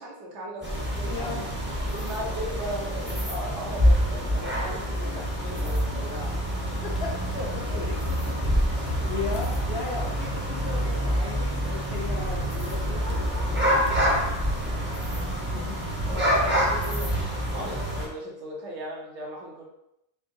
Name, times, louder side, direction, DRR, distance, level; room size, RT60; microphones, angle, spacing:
voice 1, 0.0-1.5 1.9-6.4 16.1-19.7, equal, 65° right, -2 dB, 1.1 m, -37 dB
sound 1, 0.6-18.1, equal, 10° right, 0.6 m, -27 dB
voice 2, 1.0-1.5 6.7-15.2, left 5 dB, 60° left, -1 dB, 0.7 m, -37 dB
sound 2, 5.5-10.5 12.3-15.3, equal, 80° left, 0.3 m, -35 dB
3.6 x 3.5 x 2.6 m, 0.84 s
omnidirectional pair, 1.4 m